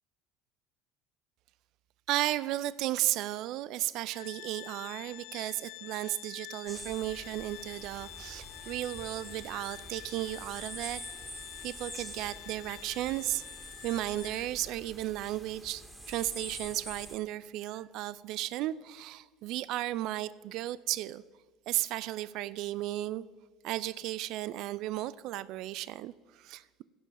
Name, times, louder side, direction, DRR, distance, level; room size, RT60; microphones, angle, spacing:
voice 1, 2.1-11.0 11.6-13.4 13.8-21.2 21.7-23.2 23.6-26.8, right 15 dB, 65° right, 18 dB, 0.3 m, -34 dB
Organ, 4.1-14.8, left 19 dB, 70° left, 0.5 m, -48 dB
sound 1, 6.7-17.2, right 1 dB, 10° right, 2.2 m, -47 dB
15.5 x 5.5 x 5.2 m, 1.4 s
hypercardioid pair, 80°, 0 cm